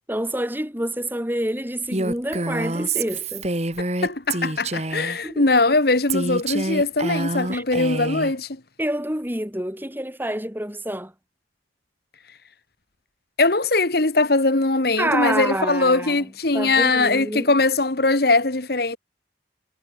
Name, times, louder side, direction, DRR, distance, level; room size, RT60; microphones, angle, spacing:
voice 1, 0.1-3.5 5.2-5.5 7.5-7.6 8.8-11.1 15.0-17.5, right 1 dB, 10° right, 5.5 m, -27 dB
Female speech woman speaking, 1.9-5.2 6.1-8.3, right 2 dB, 35° right, 2.4 m, -27 dB
voice 2, 4.0-8.5 13.4-19.0, left 3 dB, 55° left, 1.5 m, -21 dB
head